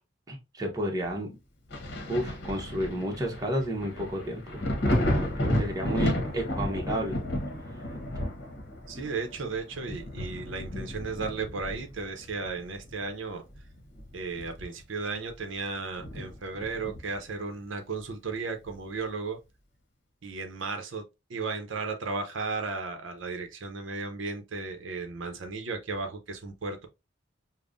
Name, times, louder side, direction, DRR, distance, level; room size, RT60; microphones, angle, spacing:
voice 1, 0.3-1.4 2.1-7.2, equal, 20° right, 0.8 m, -32 dB
Thunder, 1.7-13.0 13.5-15.0 15.3-15.4 16.0-17.3 18.7-18.8, left 1 dB, 55° left, 1.0 m, -33 dB
voice 2, 8.9-13.4 14.1-19.4 20.2-21.0 21.3-26.9, right 4 dB, 75° right, 0.7 m, -35 dB
5.3 x 2.1 x 2.5 m
head